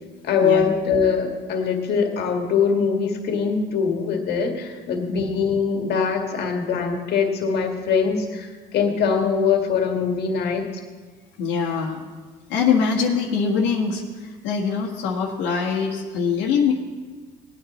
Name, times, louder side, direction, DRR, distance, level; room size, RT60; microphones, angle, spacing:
voice 1, 0.2-10.6, left 6 dB, 65° left, 3 dB, 1.9 m, -22 dB
voice 2, 11.4-12.0 12.5-16.7, left 6 dB, 85° left, -2 dB, 1.6 m, -23 dB
18.5 x 9.6 x 4.2 m, 1.4 s
cardioid pair, 115°, 18 cm